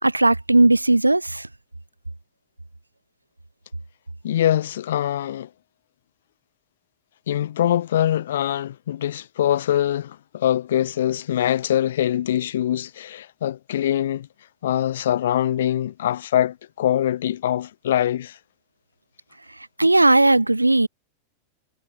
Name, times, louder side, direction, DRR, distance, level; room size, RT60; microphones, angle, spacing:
voice 1, 0.0-1.5 19.8-20.9, right 2 dB, 85° right, 4.5 m, -17 dB
voice 2, 4.2-5.5 7.3-14.3 14.6-18.4, left 11 dB, 60° left, 4.7 m, -23 dB
figure-of-eight pair, 90°, 0 cm